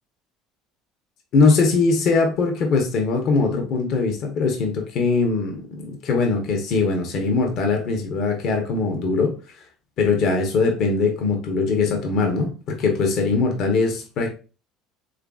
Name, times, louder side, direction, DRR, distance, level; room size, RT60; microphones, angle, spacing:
voice 1, 1.3-9.4 10.0-14.3, left 4 dB, 60° left, 3 dB, 0.6 m, -21 dB
3.1 x 2.4 x 2.3 m, 0.34 s
hypercardioid pair, 75°, 0 cm